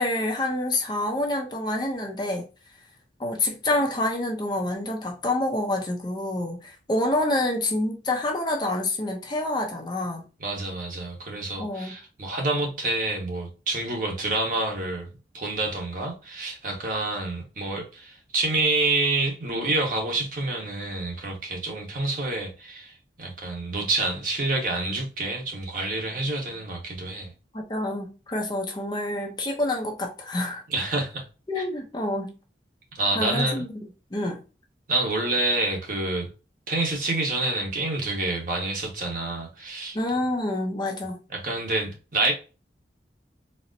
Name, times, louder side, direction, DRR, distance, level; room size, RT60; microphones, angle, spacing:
voice 1, 0.0-2.5 3.2-10.3 11.6-11.9 27.5-30.6 31.5-32.3 33.1-33.7 34.1-34.4 39.9-41.2, left 1 dB, 25° left, 0.5 m, -27 dB
voice 2, 10.4-27.3 30.7-31.2 32.9-33.6 34.9-36.3 36.7-40.0 41.3-42.3, right 2 dB, 50° right, 1.0 m, -28 dB
4.2 x 2.0 x 2.5 m
head